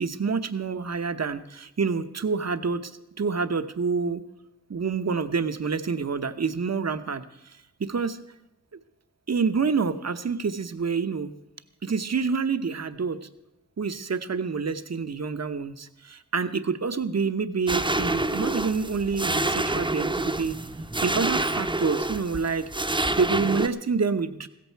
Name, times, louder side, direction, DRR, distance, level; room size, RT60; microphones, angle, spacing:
voice 1, 0.0-2.9 3.2-4.2 4.7-8.2 9.3-11.3 11.8-13.3 13.8-20.6 21.0-24.5, right 5 dB, 55° right, 11 dB, 0.9 m, -27 dB
sound 1, 17.7-23.7, right 2 dB, 15° right, 0.8 m, -27 dB
16.0 x 14.0 x 4.6 m, 0.90 s
wide cardioid pair, 60°, 32 cm